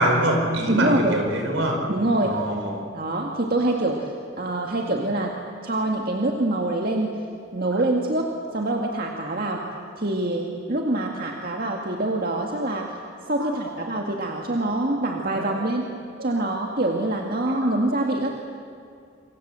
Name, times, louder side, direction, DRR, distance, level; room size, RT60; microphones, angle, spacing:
voice 1, 0.0-1.9 2.2-2.8 7.7-7.8 13.4-13.8 15.3-15.6 16.2-16.5 17.6-17.7, right 1 dB, 75° right, 3 dB, 5.0 m, -25 dB
voice 2, 0.7-1.2 1.9-2.4 2.9-4.1 4.4-5.4 5.6-7.2 7.5-9.7 10.0-13.0 13.3-15.9 16.2-18.3, right 2 dB, 50° right, 1 dB, 2.0 m, -25 dB
27.5 x 25.0 x 7.7 m, 2.4 s
head